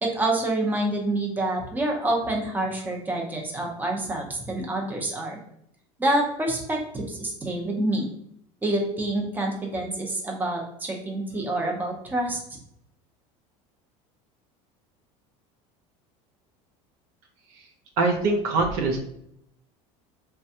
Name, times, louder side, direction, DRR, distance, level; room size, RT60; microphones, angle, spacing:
voice 1, 0.0-5.4 6.0-8.1 8.6-12.4, right 1 dB, 10° right, 0 dB, 0.6 m, -27 dB
voice 2, 18.0-19.0, right 3 dB, 70° right, 3 dB, 0.7 m, -23 dB
3.2 x 2.3 x 2.7 m, 0.74 s
supercardioid pair, 110°, 16 cm